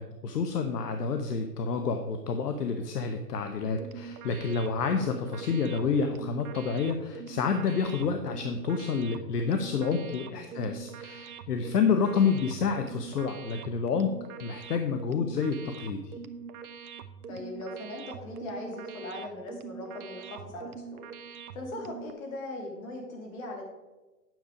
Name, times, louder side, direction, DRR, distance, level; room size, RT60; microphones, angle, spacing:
voice 1, 0.0-16.1, left 5 dB, 75° left, 6 dB, 1.0 m, -29 dB
sound 1, 3.6-22.1, right 6 dB, 60° right, 0.9 m, -44 dB
voice 2, 17.3-21.0 21.5-23.6, left 1 dB, 55° left, 1 dB, 3.1 m, -39 dB
9.4 x 6.7 x 4.9 m, 1.2 s
hypercardioid pair, 120°, 48 cm